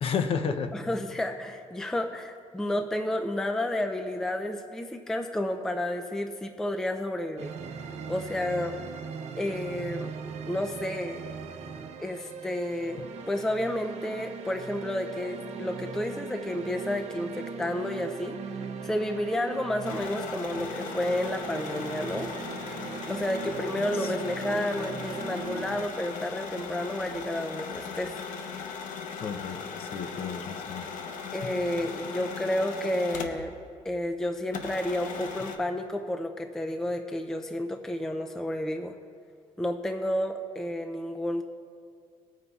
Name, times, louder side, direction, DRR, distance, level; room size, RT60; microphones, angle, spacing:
voice 1, 0.0-0.8 13.0-13.1 29.2-30.9 31.4-31.5, left 6 dB, 45° left, 8 dB, 0.6 m, -32 dB
voice 2, 0.7-7.5 8.1-8.7 9.3-10.1 10.4-11.2 12.0-18.4 18.8-22.3 23.1-28.2 31.3-33.5 33.9-38.9 39.6-41.4, left 1 dB, 5° left, 5 dB, 0.3 m, -31 dB
sound 1, 7.4-25.8, right 5 dB, 55° right, 0.6 m, -39 dB
sound 2, 19.8-33.6 33.9-34.0 34.5-35.6, left 6 dB, 90° left, 0.8 m, -38 dB
18.0 x 9.1 x 2.3 m, 2.3 s
cardioid pair, 175°, 13 cm